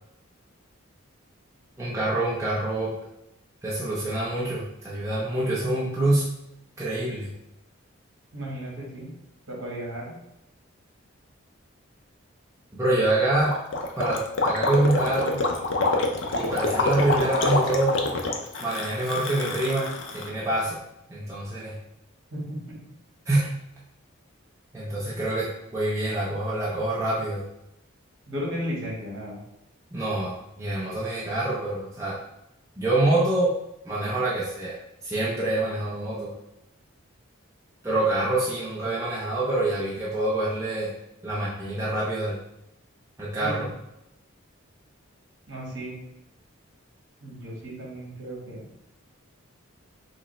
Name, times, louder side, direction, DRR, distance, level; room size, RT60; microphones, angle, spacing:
voice 1, 1.8-2.9 3.6-6.2 6.8-7.3 12.7-13.5 14.0-15.4 16.3-18.0 18.6-20.8 21.1-21.8 23.3-23.5 24.7-27.4 29.9-32.2 32.8-33.5 33.9-34.8 35.0-36.3 37.8-40.9 41.2-42.4 43.2-43.7, right 2 dB, 15° right, -7 dB, 0.5 m, -26 dB
voice 2, 8.3-9.1 9.5-10.1 22.3-22.6 28.3-29.4 43.4-43.5 45.5-46.0 47.2-48.7, equal, 60° right, -4 dB, 1.4 m, -34 dB
Gurgling, 13.4-20.3, left 3 dB, 60° left, 0.5 m, -26 dB
4.9 x 2.1 x 3.1 m, 0.83 s
head